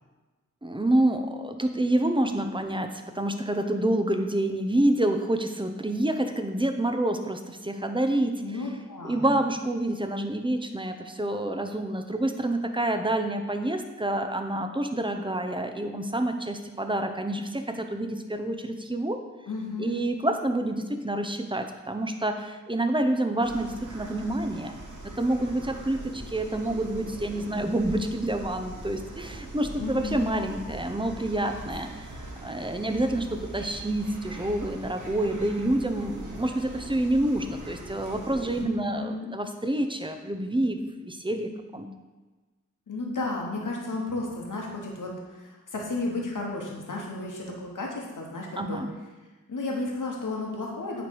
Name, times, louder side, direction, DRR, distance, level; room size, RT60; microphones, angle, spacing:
voice 1, 0.6-8.6 9.0-19.2 19.8-24.8 25.0-41.9 48.5-48.9, right 1 dB, 15° right, 6 dB, 0.7 m, -28 dB
voice 2, 8.4-9.2 19.5-20.0 29.8-30.3 38.6-39.3 42.9-48.8 49.5-51.0, left 2 dB, 85° left, -1 dB, 1.2 m, -33 dB
sound 1, 23.4-38.6, right 1 dB, 70° right, 1.2 m, -41 dB
9.2 x 3.3 x 4.6 m, 1.2 s
cardioid pair, 40°, 31 cm